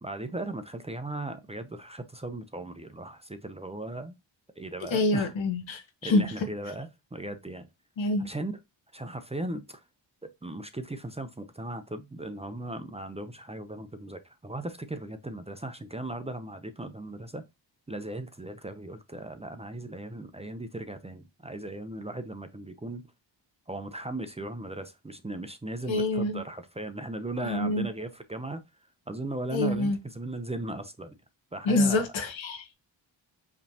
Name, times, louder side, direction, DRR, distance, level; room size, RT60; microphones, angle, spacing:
voice 1, 0.0-4.2 4.6-5.3 6.0-7.7 8.2-8.6 8.9-9.8 10.2-17.4 17.9-23.1 23.7-28.6 29.1-31.2 31.5-32.0, right 2 dB, 15° right, 0.6 m, -37 dB
voice 2, 4.9-6.5 8.0-8.3 25.8-26.4 27.4-27.9 29.5-30.0 31.6-32.7, left 2 dB, 75° left, 1.4 m, -26 dB
5.0 x 3.3 x 2.8 m
cardioid pair, 80°, 47 cm